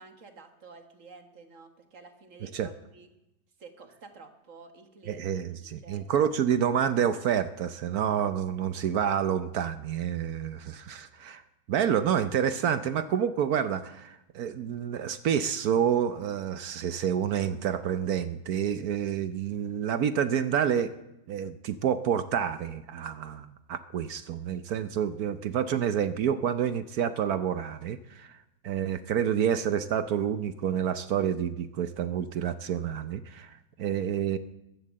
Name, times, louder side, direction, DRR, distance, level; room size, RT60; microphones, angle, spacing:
voice 1, 0.0-3.1 3.6-5.2 5.8-6.0, right 4 dB, 45° right, 6 dB, 1.8 m, -51 dB
voice 2, 5.1-11.4 11.7-21.0 21.3-28.4 28.6-34.4, right 8 dB, 65° right, 12 dB, 1.1 m, -28 dB
14.5 x 12.5 x 7.4 m, 0.90 s
omnidirectional pair, 1.9 m